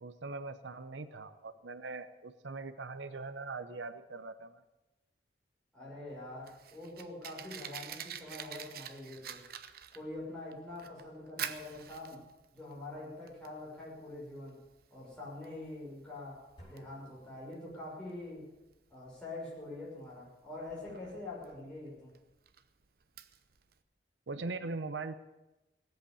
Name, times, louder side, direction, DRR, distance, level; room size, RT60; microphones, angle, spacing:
voice 1, 0.0-4.5 24.3-25.1, right 3 dB, 85° right, 11 dB, 0.8 m, -41 dB
voice 2, 5.7-9.4 9.9-12.2 12.5-14.6 14.9-18.5 18.9-22.1, left 2 dB, 5° left, -7 dB, 6.3 m, -45 dB
Fire, 6.1-23.8, right 9 dB, 55° right, 0.8 m, -48 dB
sound 1, 16.6-18.3, equal, 25° left, 6.8 m, -59 dB
17.5 x 8.1 x 8.5 m, 1.0 s
head